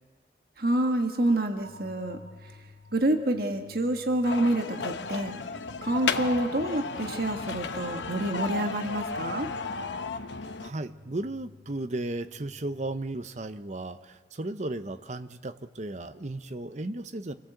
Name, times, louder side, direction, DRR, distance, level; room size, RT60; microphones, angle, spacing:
voice 1, 0.6-2.2 2.9-5.3 5.8-9.5, right 1 dB, 55° right, 5 dB, 1.5 m, -27 dB
sound 1, 1.6-13.5, left 2 dB, 90° right, 2.9 m, -55 dB
sound 2, 4.2-10.7, left 4 dB, 85° left, 0.9 m, -34 dB
voice 2, 10.6-17.3, right 2 dB, 40° right, 11 dB, 0.9 m, -35 dB
27.5 x 17.0 x 7.9 m, 1.5 s
head